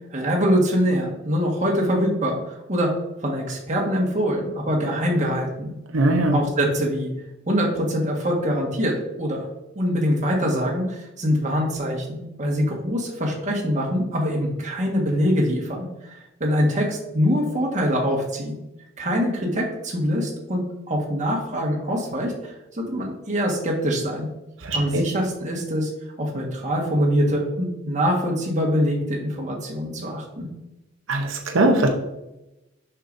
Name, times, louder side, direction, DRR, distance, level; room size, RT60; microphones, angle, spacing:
voice 1, 0.1-2.9 3.2-5.7 6.3-7.1 7.5-9.5 9.7-18.5 19.0-24.3 24.7-25.9 26.2-30.5, equal, 40° right, -1 dB, 1.6 m, -24 dB
voice 2, 5.9-6.4 24.6-25.0 31.1-31.9, right 2 dB, 90° right, 3 dB, 0.8 m, -20 dB
6.5 x 5.9 x 2.6 m, 0.93 s
head